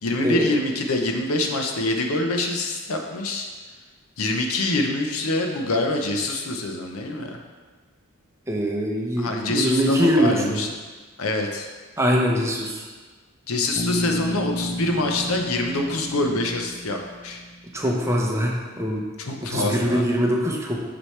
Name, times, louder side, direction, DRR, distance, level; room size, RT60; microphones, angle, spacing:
voice 1, 0.0-3.5 4.2-7.4 9.2-10.7 11.2-11.7 13.5-17.0 17.2-17.4 19.2-20.0, left 2 dB, 80° left, 3 dB, 0.8 m, -25 dB
voice 2, 8.5-10.6 12.0-12.8 17.7-19.0 19.5-20.8, equal, 15° right, -1 dB, 0.7 m, -22 dB
Bass guitar, 13.8-17.6, left 1 dB, 40° left, 0.8 m, -31 dB
6.3 x 6.1 x 3.2 m, 1.4 s
head